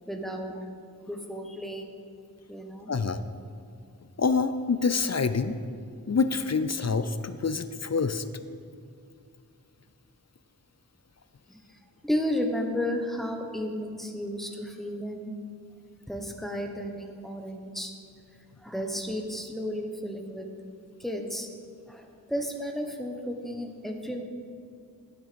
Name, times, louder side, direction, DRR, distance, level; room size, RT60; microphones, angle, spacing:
voice 1, 0.1-0.5 1.1-2.0 2.5-2.9 11.5-11.6 12.0-15.3 16.1-17.9 18.6-20.4 21.0-21.5 21.9-24.2, equal, ahead, 3 dB, 1.1 m, -33 dB
voice 2, 2.9-3.2 4.2-5.6 6.1-8.2, left 4 dB, 45° left, 12 dB, 0.5 m, -26 dB
12.0 x 6.5 x 5.2 m, 2.3 s
wide cardioid pair, 40°, 36 cm